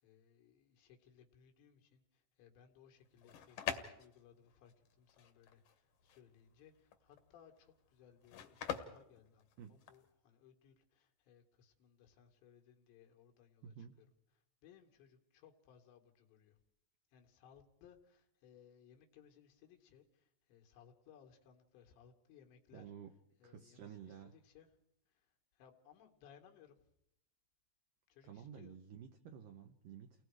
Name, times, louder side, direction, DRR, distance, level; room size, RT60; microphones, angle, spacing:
voice 1, 0.0-13.9 14.6-16.6 17.1-22.9 23.4-24.7 25.1-26.8 28.1-28.8, left 8 dB, 85° left, 3 dB, 4.0 m, -64 dB
sound 1, 3.0-10.1, left 9 dB, 60° left, 2.1 m, -45 dB
voice 2, 13.6-14.0 22.7-23.1 23.4-24.4 28.2-30.3, right 8 dB, 70° right, 4 dB, 2.1 m, -52 dB
29.5 x 20.5 x 4.8 m, 0.79 s
omnidirectional pair, 5.0 m